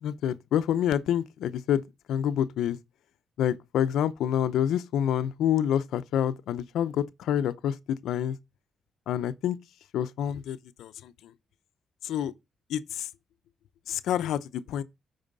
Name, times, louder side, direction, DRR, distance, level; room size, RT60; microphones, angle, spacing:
voice 1, 0.0-1.8 2.1-2.8 3.4-8.4 9.1-9.6 9.9-11.1 12.0-12.3 12.7-13.1 13.9-14.8, left 10 dB, 90° left, 0.6 m, -27 dB
8.9 x 5.5 x 3.9 m
cardioid pair, 90°, 0 cm